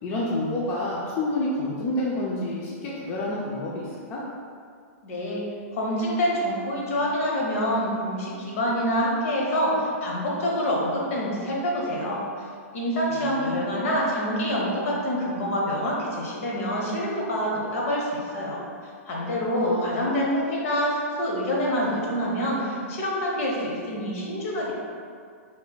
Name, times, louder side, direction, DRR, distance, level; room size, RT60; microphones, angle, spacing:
voice 1, 0.0-4.2 13.1-13.6 19.3-20.0, left 1 dB, 35° left, -5 dB, 0.5 m, -29 dB
voice 2, 5.0-5.5 5.7-12.5 12.7-24.7, equal, 65° left, -3 dB, 1.0 m, -26 dB
3.2 x 2.2 x 3.9 m, 2.2 s
hypercardioid pair, 130°, 8 cm